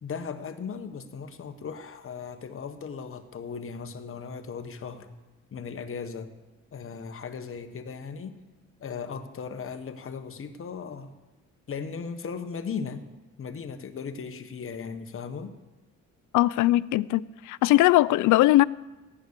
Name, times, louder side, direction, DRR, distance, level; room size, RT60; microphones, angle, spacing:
voice 1, 0.0-5.1 5.5-6.3 6.7-8.4 8.8-11.1 11.7-13.1 13.4-15.6, left 6 dB, 45° left, 1.3 m, -37 dB
voice 2, 16.3-17.2 17.5-18.6, left 16 dB, 80° left, 0.5 m, -20 dB
15.0 x 9.8 x 6.7 m
cardioid pair, 90°, 30 cm